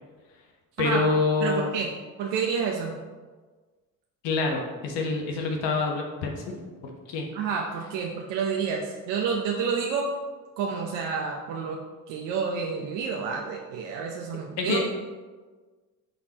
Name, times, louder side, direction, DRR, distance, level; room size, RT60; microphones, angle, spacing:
voice 1, 0.8-1.7 4.2-7.3 14.6-14.9, left 3 dB, 70° left, 2 dB, 1.2 m, -26 dB
voice 2, 1.4-1.9 2.2-3.0 7.3-10.1 10.6-11.8 12.1-14.9, right 5 dB, 70° right, 0 dB, 0.8 m, -29 dB
8.9 x 4.2 x 3.0 m, 1.4 s
hypercardioid pair, 55°, 44 cm